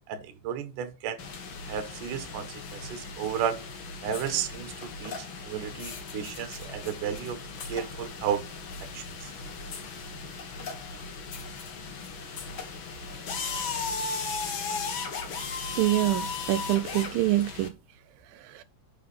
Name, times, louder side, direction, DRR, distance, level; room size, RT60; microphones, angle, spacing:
voice 1, 0.1-1.2 1.7-3.7 4.0-7.4 7.7-8.5 8.8-9.1, right 8 dB, 65° right, 2.3 m, -33 dB
sound 1, 1.2-17.7, left 4 dB, 80° left, 1.1 m, -37 dB
voice 2, 15.8-17.8 18.3-18.6, right 16 dB, 80° right, 2.1 m, -26 dB
7.1 x 5.7 x 6.8 m
omnidirectional pair, 4.7 m